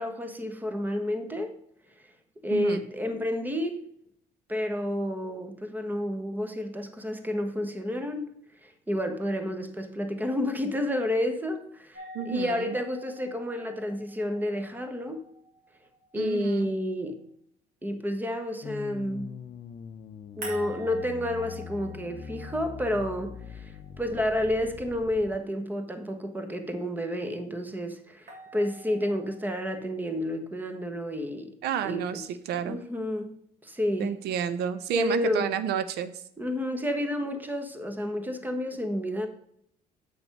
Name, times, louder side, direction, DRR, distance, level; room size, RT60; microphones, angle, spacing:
voice 1, 0.0-1.5 2.4-3.8 4.5-8.3 8.6-15.2 16.1-17.2 17.8-19.3 20.4-31.6 31.8-32.2 32.6-33.3 33.6-34.2 34.9-35.5 36.4-39.3, left 1 dB, 10° right, 7 dB, 1.2 m, -30 dB
voice 2, 2.5-2.8 12.1-12.8 16.1-16.7 31.6-32.8 34.0-36.1, right 9 dB, 75° right, 13 dB, 0.5 m, -30 dB
sound 1, 11.9-16.9 20.4-24.5 28.3-29.5, right 1 dB, 60° right, 3.4 m, -47 dB
sound 2, 18.6-25.4, left 7 dB, 45° left, 0.7 m, -43 dB
8.0 x 5.9 x 5.3 m, 0.71 s
cardioid pair, 110°, 17 cm